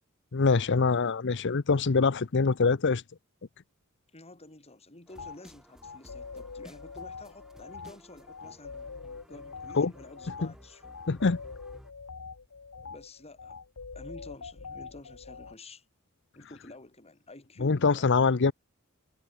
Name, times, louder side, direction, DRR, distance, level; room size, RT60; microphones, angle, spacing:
voice 1, 0.3-3.0 9.8-9.9 11.1-11.4 17.6-18.5, left 4 dB, 55° left, 0.7 m, -24 dB
voice 2, 4.1-8.8 9.3-10.8 12.8-13.6 13.9-15.8 16.3-18.1, left 2 dB, 30° left, 3.4 m, -50 dB
sound 1, 5.1-11.9, equal, ahead, 3.4 m, -56 dB
sound 2, 5.2-5.4 5.8-15.5, left 5 dB, 85° left, 1.0 m, -44 dB
head